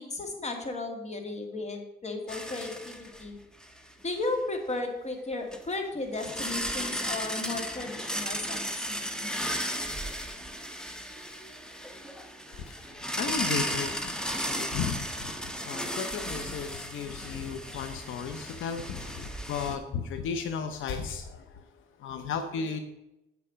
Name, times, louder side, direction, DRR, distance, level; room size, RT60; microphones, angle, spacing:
voice 1, 0.0-3.4 4.0-9.3, left 2 dB, 35° left, 4 dB, 2.1 m, -35 dB
sound 1, 2.3-3.3 3.6-3.8 5.5-5.6 6.2-19.8, equal, 5° left, 1.1 m, -35 dB
voice 2, 12.6-21.7 22.0-22.8, left 6 dB, 80° left, 8 dB, 0.8 m, -35 dB
8.3 x 6.9 x 5.0 m, 0.92 s
cardioid pair, 90°, 20 cm